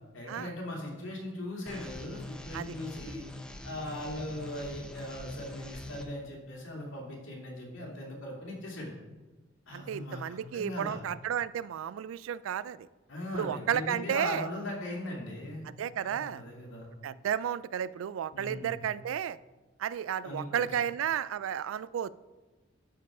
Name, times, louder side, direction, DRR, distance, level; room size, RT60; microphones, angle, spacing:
voice 1, 0.1-3.2 3.6-8.9 9.7-11.0 13.1-15.7 16.0-16.9 18.3-18.7 20.2-20.6, left 1 dB, 75° left, -1 dB, 2.4 m, -39 dB
sound 1, 1.7-6.0, left 1 dB, 5° left, 0.6 m, -44 dB
voice 2, 9.7-12.8 13.3-14.5 15.6-16.4 17.0-19.4 19.8-22.1, right 9 dB, 90° right, 19 dB, 0.3 m, -33 dB
11.5 x 4.7 x 4.9 m, 1.2 s
head